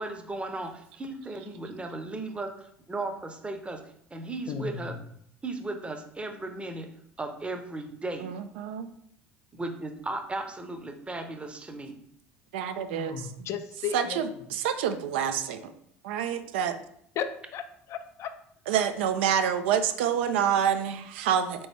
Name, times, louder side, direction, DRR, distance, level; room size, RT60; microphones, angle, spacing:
voice 1, 0.0-3.8 4.1-5.0 5.4-6.9 7.2-8.3 9.5-12.0, right 2 dB, 15° right, 6 dB, 0.7 m, -36 dB
voice 2, 4.5-5.0 12.8-14.2 17.2-17.6 17.9-18.3, left 7 dB, 50° left, 10 dB, 0.4 m, -35 dB
voice 3, 8.2-8.9 12.5-13.3 13.9-15.7 16.0-16.7 18.7-21.7, right 8 dB, 70° right, 8 dB, 0.4 m, -27 dB
4.0 x 3.0 x 3.3 m, 0.68 s
figure-of-eight pair, 65°, 6 cm